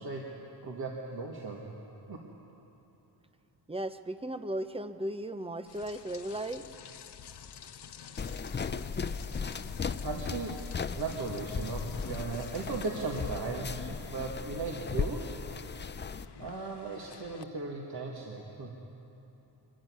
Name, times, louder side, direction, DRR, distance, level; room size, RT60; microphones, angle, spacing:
voice 1, 0.0-1.7 2.1-2.2 10.0-15.4 16.4-18.7, right 3 dB, 55° right, -1 dB, 1.9 m, -37 dB
voice 2, 3.7-6.7, right 1 dB, 15° right, 10 dB, 0.7 m, -36 dB
Rain, 5.7-17.4, left 7 dB, 65° left, 0.9 m, -48 dB
sound 1, 8.2-16.3, left 5 dB, 25° left, 0.5 m, -37 dB
23.5 x 14.5 x 9.6 m, 3.0 s
wide cardioid pair, 135°, 44 cm